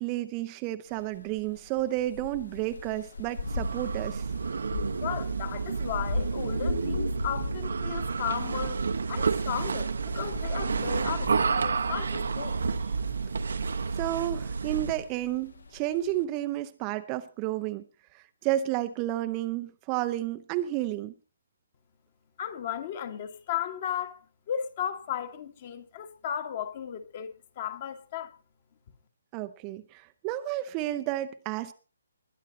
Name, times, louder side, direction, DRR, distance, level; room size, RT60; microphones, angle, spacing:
voice 1, 0.0-4.3 13.9-17.8 18.1-21.1 29.3-31.7, right 14 dB, 20° right, 0.7 m, -31 dB
sound 1, 0.9-16.2, left 4 dB, 65° left, 1.9 m, -40 dB
sound 2, 3.3-15.1, right 5 dB, 60° right, 0.9 m, -30 dB
voice 2, 5.0-8.8 9.1-12.6 22.4-24.2 24.5-28.3, left 9 dB, 35° left, 1.7 m, -35 dB
21.0 x 10.0 x 4.1 m
figure-of-eight pair, 135°, 0 cm